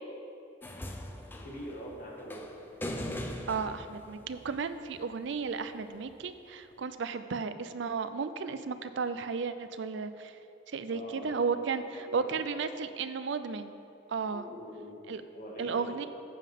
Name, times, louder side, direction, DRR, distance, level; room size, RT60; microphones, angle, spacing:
sound 1, 0.6-5.0 6.1-6.2, left 1 dB, 10° left, 0.5 m, -40 dB
voice 1, 1.3-2.4 10.9-11.6 11.9-12.3 14.3-15.0 15.3-16.0, equal, 45° left, -3 dB, 1.9 m, -44 dB
voice 2, 3.5-10.3 10.7-13.7 14.1-14.4 15.1-15.2 15.6-16.1, right 5 dB, 70° right, 11 dB, 0.4 m, -34 dB
14.5 x 7.5 x 3.6 m, 2.7 s
head